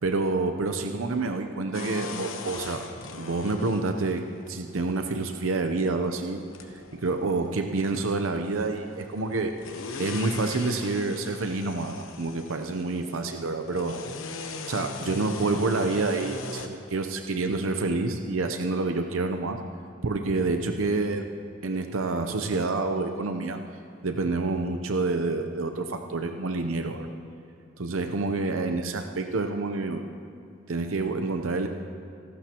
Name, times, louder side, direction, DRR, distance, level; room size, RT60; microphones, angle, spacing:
voice 1, 0.0-2.8 3.2-4.2 4.5-6.4 7.0-9.5 10.0-14.0 14.7-19.6 20.0-21.2 21.6-23.6 24.0-27.1 27.8-30.0 30.7-31.7, right 3 dB, 80° right, 5 dB, 0.7 m, -28 dB
sound 1, 1.7-16.7, left 4 dB, 75° left, 1.1 m, -40 dB
26.5 x 12.5 x 3.0 m, 2.6 s
head